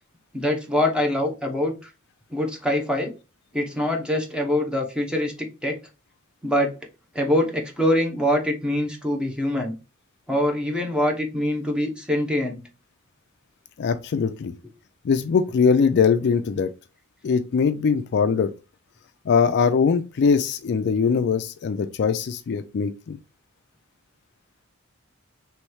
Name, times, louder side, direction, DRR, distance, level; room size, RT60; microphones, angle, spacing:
voice 1, 0.3-1.7 2.3-3.1 3.5-5.3 5.6-5.8 6.4-6.7 7.1-9.7 10.3-12.6, left 1 dB, 5° right, 0.9 m, -24 dB
voice 2, 13.8-14.5 15.0-16.7 17.2-18.5 19.3-23.2, left 5 dB, 55° left, 0.4 m, -21 dB
3.2 x 3.1 x 4.6 m
head